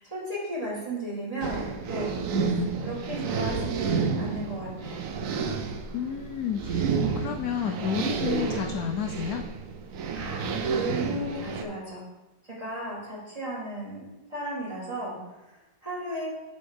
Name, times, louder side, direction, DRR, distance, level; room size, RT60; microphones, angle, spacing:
voice 1, 0.1-5.0 10.1-12.0 12.4-14.0 14.3-16.3, right 1 dB, 20° right, -8 dB, 2.9 m, -35 dB
sound 1, 1.4-11.6, right 5 dB, 65° right, 0.9 m, -30 dB
voice 2, 5.9-9.4, left 8 dB, 70° left, 5 dB, 0.9 m, -31 dB
7.5 x 7.0 x 3.4 m, 1.0 s
omnidirectional pair, 1.9 m